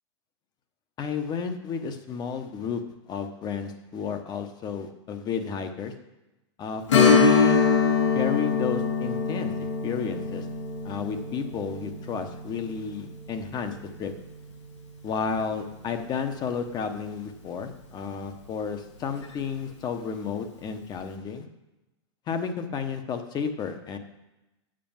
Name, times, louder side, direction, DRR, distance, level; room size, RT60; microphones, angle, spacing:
voice 1, 1.0-2.8 3.1-5.9 6.6-7.6 8.1-9.5 9.8-10.5 10.8-14.1 15.0-21.5 22.3-24.0, left 6 dB, 25° left, 8 dB, 1.0 m, -32 dB
Strum, 6.9-16.1 16.4-16.5 19.1-19.2 19.7-19.8, left 5 dB, 90° left, 2.2 m, -25 dB
7.6 x 6.7 x 7.2 m, 0.99 s
hypercardioid pair, 130°, 15 cm